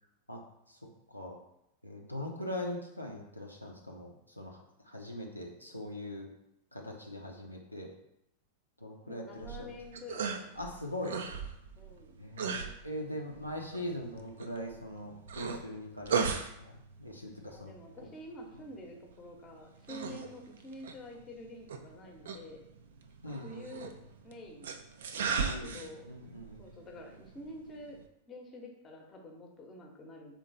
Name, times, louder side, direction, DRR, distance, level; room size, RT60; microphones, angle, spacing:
voice 1, 1.8-6.3 6.7-7.9 8.8-9.7 10.6-11.2 12.2-17.7 20.0-20.2 23.2-23.8 25.4-26.8, left 1 dB, 90° left, 0 dB, 0.6 m, -41 dB
voice 2, 9.0-10.5 11.8-12.2 17.5-22.7 23.2-23.9 24.2-24.8 25.1-26.1 26.6-28.0 28.3-30.3, left 1 dB, 25° left, 1 dB, 0.8 m, -48 dB
sound 1, 9.3-28.1, right 6 dB, 60° right, 0.4 m, -39 dB
3.8 x 2.9 x 4.0 m, 0.81 s
figure-of-eight pair, 90°, 0 cm